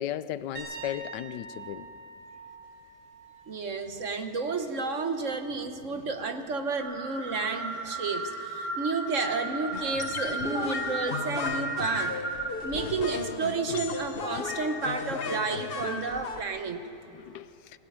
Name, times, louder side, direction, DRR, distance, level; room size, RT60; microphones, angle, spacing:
voice 1, 0.0-1.9 5.8-6.0 17.1-17.5, left 11 dB, 85° left, 15 dB, 1.3 m, -36 dB
sound 1, 0.5-4.3 4.6-5.0 7.8-7.9, right 3 dB, 30° right, 7.0 m, -45 dB
voice 2, 3.5-12.1 12.6-16.8, right 4 dB, 50° right, 7 dB, 1.4 m, -31 dB
sound 2, 6.8-12.5, right 3 dB, 10° right, 3.7 m, -35 dB
sound 3, 9.7-16.4, left 5 dB, 45° left, 0.8 m, -35 dB
20.0 x 17.5 x 9.0 m, 2.9 s
omnidirectional pair, 1.8 m